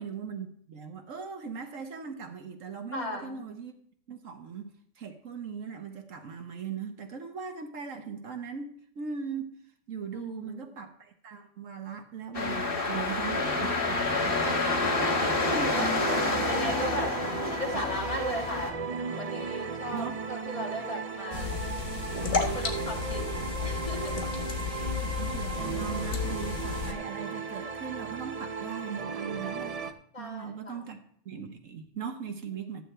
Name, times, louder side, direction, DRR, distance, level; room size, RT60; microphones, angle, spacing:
voice 1, 0.0-3.7 4.1-9.6 9.9-14.4 15.4-16.6 19.9-20.1 20.8-20.9 24.6-24.8 25.0-32.8, right 6 dB, 80° right, 6 dB, 1.4 m, -39 dB
voice 2, 2.9-3.4 10.1-10.7 13.8-15.9 16.4-17.2 17.6-18.8 19.1-21.6 22.5-23.3 23.6-24.2 24.6-24.9 30.1-30.9, equal, 25° left, -3 dB, 2.5 m, -37 dB
sound 1, 12.3-18.7, left 3 dB, 45° left, 1.6 m, -28 dB
sound 2, 14.2-29.9, right 5 dB, 45° right, 0.5 m, -36 dB
sound 3, 21.3-26.9, left 5 dB, 70° left, 1.7 m, -33 dB
13.0 x 9.3 x 3.3 m, 0.63 s
omnidirectional pair, 1.3 m